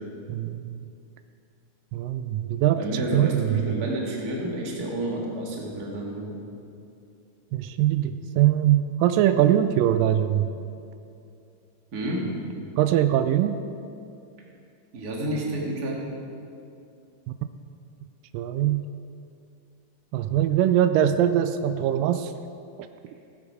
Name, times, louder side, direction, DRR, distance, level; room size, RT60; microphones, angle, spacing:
voice 1, 0.3-0.8 1.9-3.7 7.5-10.5 12.8-13.6 18.3-18.9 20.1-22.3, right 11 dB, 85° right, 10 dB, 2.2 m, -22 dB
voice 2, 2.8-6.4 11.9-12.7 14.9-16.0, right 1 dB, 35° right, -2 dB, 1.9 m, -30 dB
16.5 x 8.8 x 4.9 m, 2.5 s
omnidirectional pair, 3.9 m